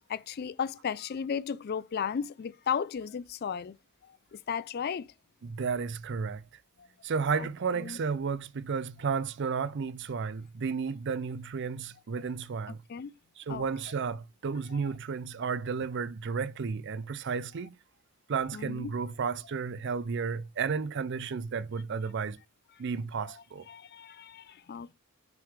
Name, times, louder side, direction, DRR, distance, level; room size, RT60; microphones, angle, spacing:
voice 1, 0.1-3.8 4.3-5.1 7.4-7.5 7.8-8.0 12.9-13.1 13.5-13.6 18.5-18.9 23.2-23.3 23.7-24.9, left 7 dB, 45° left, 0.3 m, -35 dB
voice 2, 5.4-6.4 7.0-12.8 13.4-17.7 18.3-22.4 22.8-23.7, right 5 dB, 50° right, 0.4 m, -33 dB
5.8 x 3.7 x 4.9 m
head